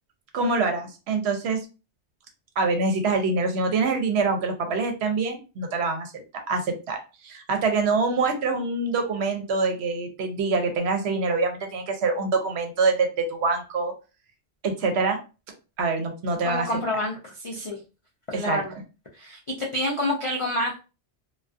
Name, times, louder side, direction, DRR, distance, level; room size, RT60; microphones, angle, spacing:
voice 1, 0.3-1.6 2.6-13.9 14.6-15.2 15.8-16.8 18.3-18.6, right 4 dB, 70° right, 5 dB, 0.8 m, -25 dB
voice 2, 16.4-17.2 17.4-17.8 18.3-18.7 19.1-20.8, left 1 dB, 60° left, -2 dB, 0.3 m, -28 dB
2.3 x 2.2 x 2.4 m, 0.31 s
omnidirectional pair, 1.2 m